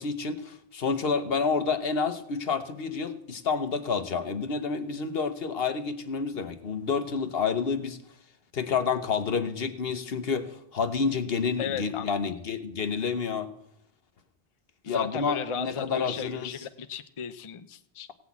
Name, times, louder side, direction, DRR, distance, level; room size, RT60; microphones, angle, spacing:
voice 1, 0.0-8.0 8.5-13.5 14.8-16.5, left 5 dB, 70° left, 10 dB, 1.2 m, -29 dB
voice 2, 11.6-12.3 14.9-18.1, left 7 dB, 35° left, 10 dB, 0.6 m, -35 dB
17.0 x 6.0 x 8.4 m, 0.74 s
omnidirectional pair, 1.1 m